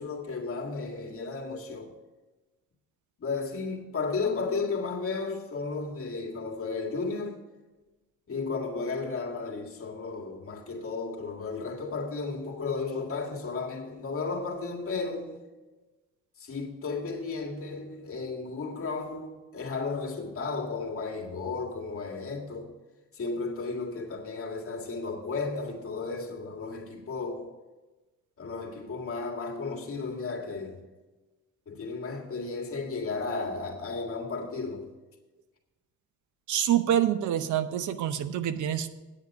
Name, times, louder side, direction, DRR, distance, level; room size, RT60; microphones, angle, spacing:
voice 1, 0.0-2.0 3.2-7.4 8.3-15.4 16.4-22.7 23.1-27.5 28.4-30.8 31.7-34.9, left 4 dB, 45° left, 1.9 m, -34 dB
voice 2, 36.5-38.9, right 10 dB, 80° right, 0.8 m, -26 dB
9.0 x 8.3 x 5.2 m
cardioid pair, 90°, 30 cm